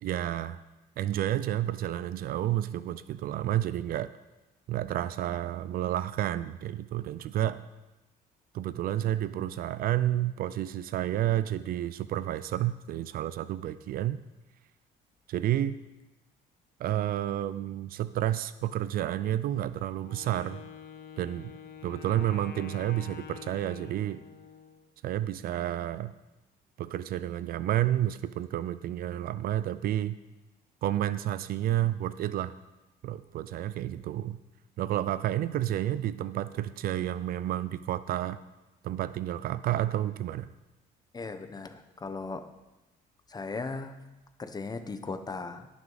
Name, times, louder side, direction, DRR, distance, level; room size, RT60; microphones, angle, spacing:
voice 1, 0.0-0.6 1.0-4.1 4.7-7.6 8.5-14.2 15.3-15.8 16.8-20.6 21.2-21.5 21.8-24.2 25.0-26.1 26.8-30.2 30.8-32.5 33.0-34.4 34.8-38.4 38.8-40.5, right 12 dB, 60° right, 15 dB, 0.4 m, -30 dB
Wind instrument woodwind instrument, 20.0-24.9, left 8 dB, 65° left, 1.0 m, -46 dB
voice 2, 41.1-42.4 43.3-44.0 44.4-45.7, left 3 dB, 25° left, 9 dB, 0.8 m, -37 dB
18.0 x 6.1 x 4.0 m, 1.1 s
cardioid pair, 110°, 17 cm